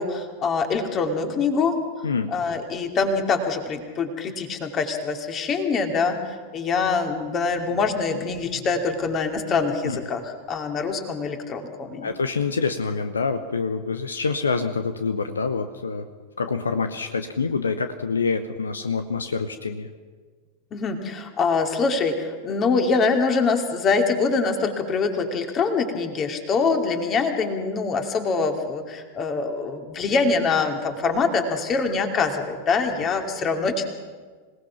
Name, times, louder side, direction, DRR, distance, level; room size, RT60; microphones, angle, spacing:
voice 1, 0.0-1.8 2.3-12.1 20.7-33.8, left 4 dB, 30° left, 5 dB, 2.7 m, -24 dB
voice 2, 12.0-16.1 16.4-19.9, left 4 dB, 75° left, 9 dB, 0.9 m, -26 dB
26.5 x 18.5 x 5.9 m, 1.5 s
figure-of-eight pair, 90°, 0 cm